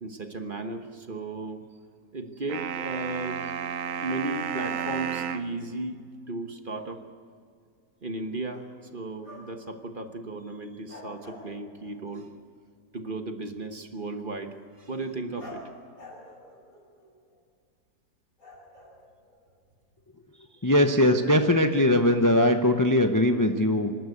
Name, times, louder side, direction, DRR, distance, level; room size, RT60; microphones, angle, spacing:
voice 1, 0.0-1.6 2.1-3.5 4.0-7.0 8.0-8.6 8.9-12.3 12.9-15.7 20.3-20.7, right 2 dB, 35° right, 6 dB, 1.2 m, -35 dB
sound 1, 2.5-5.5, right 7 dB, 60° right, 1.1 m, -32 dB
sound 2, 6.8-6.9 8.1-8.8 9.2-9.7 10.1-10.2 10.9-12.1 15.4-17.4 18.4-19.6, left 2 dB, 50° left, 7.0 m, -48 dB
voice 2, 20.6-23.9, left 1 dB, 20° left, 6 dB, 0.5 m, -21 dB
25.5 x 12.5 x 8.3 m, 2.2 s
omnidirectional pair, 1.8 m